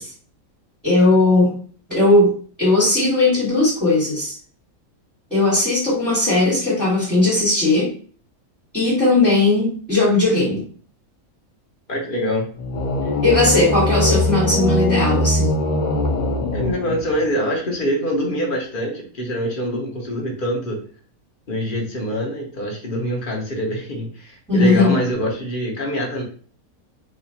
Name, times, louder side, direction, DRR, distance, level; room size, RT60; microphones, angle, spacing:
voice 1, 0.8-1.5 1.9-4.3 5.3-7.9 8.7-10.6 13.2-15.6 24.5-24.9, left 2 dB, ahead, -8 dB, 1.5 m, -17 dB
voice 2, 11.9-12.5 13.8-14.2 16.5-20.8 21.5-26.2, equal, 40° left, 0 dB, 0.9 m, -24 dB
sound 1, 12.6-17.3, left 1 dB, 80° left, 0.4 m, -21 dB
4.1 x 2.5 x 2.8 m, 0.43 s
omnidirectional pair, 1.5 m